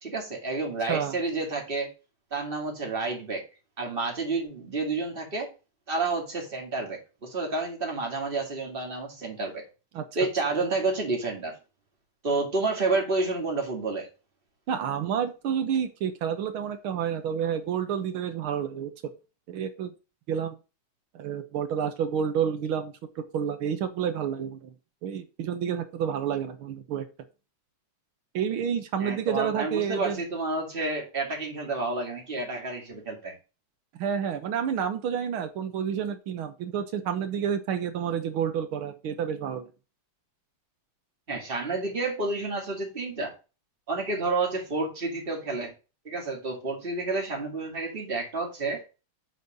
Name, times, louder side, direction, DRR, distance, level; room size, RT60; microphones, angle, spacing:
voice 1, 0.0-1.9 2.3-3.4 3.8-5.5 5.9-9.6 10.2-11.5 12.2-14.1 29.0-33.3 41.3-43.3 43.9-45.7 46.0-48.8, right 3 dB, 25° right, 0 dB, 2.4 m, -30 dB
voice 2, 14.7-18.9 19.5-19.9 20.3-20.6 21.2-24.7 25.0-27.1 28.3-30.2 33.9-39.7, right 8 dB, 70° right, 8 dB, 1.9 m, -29 dB
6.9 x 4.2 x 6.4 m, 0.31 s
omnidirectional pair, 2.4 m